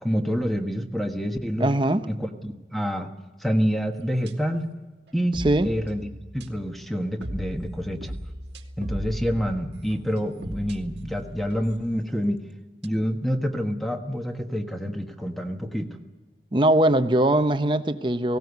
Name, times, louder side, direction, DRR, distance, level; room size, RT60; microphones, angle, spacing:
voice 1, 0.0-1.7 2.1-3.1 3.4-4.7 5.1-8.1 8.8-12.4 12.8-16.0, equal, ahead, 1.4 m, -27 dB
voice 2, 1.6-2.1 5.4-5.7 16.5-18.4, right 1 dB, 25° right, 0.8 m, -21 dB
sound 1, 4.3-4.6 5.1-6.9 7.2-11.9 12.8-12.9, equal, 85° right, 1.8 m, -37 dB
18.5 x 17.5 x 8.2 m
head